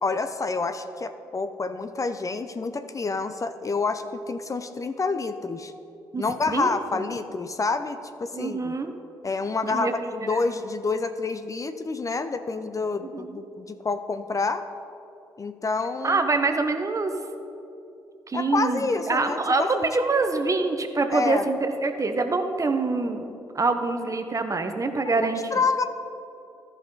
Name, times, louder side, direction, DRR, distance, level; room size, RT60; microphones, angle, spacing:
voice 1, 0.0-5.7 6.2-8.7 9.2-14.6 15.4-16.2 18.3-19.9 21.1-21.5 25.1-25.8, left 4 dB, 30° left, 9 dB, 0.6 m, -28 dB
voice 2, 6.1-7.1 8.3-8.9 9.6-9.9 13.1-13.4 16.0-17.1 18.3-25.4, right 3 dB, 30° right, 7 dB, 0.9 m, -25 dB
14.5 x 5.7 x 4.0 m, 2.8 s
hypercardioid pair, 45°, 10 cm